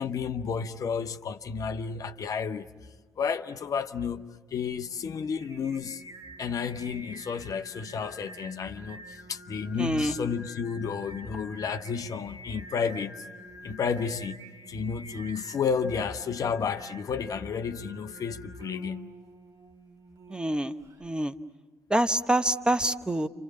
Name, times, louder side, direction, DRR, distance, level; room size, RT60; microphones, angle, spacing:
voice 1, 0.0-2.7 3.2-4.2 4.5-6.0 6.4-13.1 13.6-14.4 14.7-19.1, left 6 dB, 45° left, 0.9 m, -31 dB
Singing, 4.8-21.1, right 1 dB, 50° right, 2.2 m, -48 dB
voice 2, 9.8-10.1 20.3-20.7 21.0-21.3 21.9-23.3, right 1 dB, 10° right, 1.0 m, -26 dB
30.0 x 26.0 x 7.4 m
figure-of-eight pair, 45°, 8 cm